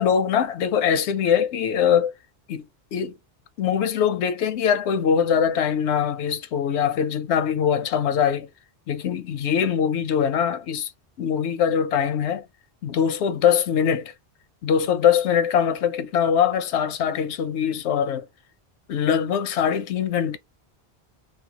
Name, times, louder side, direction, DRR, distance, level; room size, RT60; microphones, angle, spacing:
voice 1, 0.0-2.1 2.5-2.7 2.9-3.2 3.6-8.5 8.9-10.9 11.2-12.4 12.8-14.1 14.6-18.3 18.9-20.4, left 8 dB, 85° left, 0.9 m, -22 dB
3.3 x 2.0 x 2.8 m
omnidirectional pair, 1.1 m